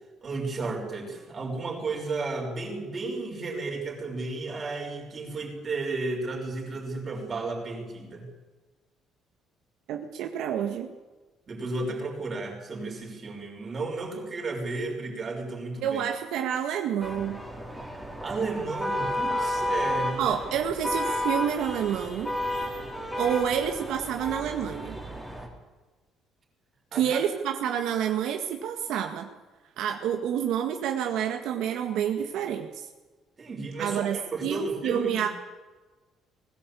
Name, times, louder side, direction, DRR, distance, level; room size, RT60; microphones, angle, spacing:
voice 1, 0.2-8.3 11.5-16.0 18.2-20.4 26.9-27.2 33.4-35.3, right 3 dB, 25° right, 1 dB, 5.7 m, -33 dB
voice 2, 9.9-10.9 15.8-17.4 20.2-22.3 23.2-24.9 26.9-29.3 29.8-32.9 33.8-35.3, right 9 dB, 70° right, 4 dB, 1.8 m, -28 dB
sound 1, 17.0-25.5, left 1 dB, ahead, 3.6 m, -32 dB
20.5 x 17.0 x 8.5 m, 1.3 s
cardioid pair, 160°, 0 cm